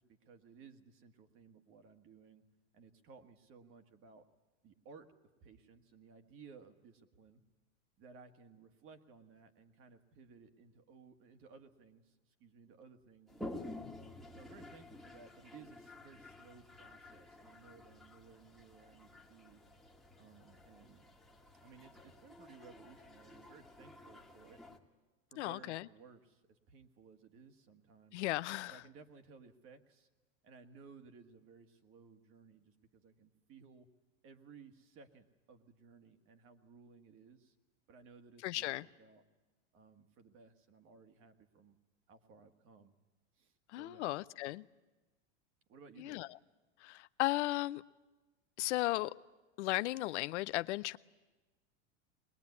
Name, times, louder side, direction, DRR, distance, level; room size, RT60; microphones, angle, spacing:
voice 1, 0.0-2.4 2.7-4.2 4.6-5.1 5.4-7.4 8.0-13.8 14.3-19.6 20.2-21.1 21.6-24.6 25.3-28.3 28.7-30.1 30.4-33.9 34.2-37.5 37.9-39.2 39.7-41.8 42.1-42.9 43.4-44.1 45.7-46.2, right 5 dB, 35° right, 8 dB, 1.8 m, -59 dB
Toilet flush, 13.3-24.8, left 1 dB, ahead, 1.6 m, -52 dB
voice 2, 25.4-25.8 28.1-28.8 38.4-38.8 43.7-44.6 46.0-46.3 46.8-47.8 48.6-49.1 49.6-51.0, left 17 dB, 75° left, 15 dB, 0.7 m, -35 dB
21.5 x 20.5 x 9.6 m, 1.2 s
supercardioid pair, 140°, 35 cm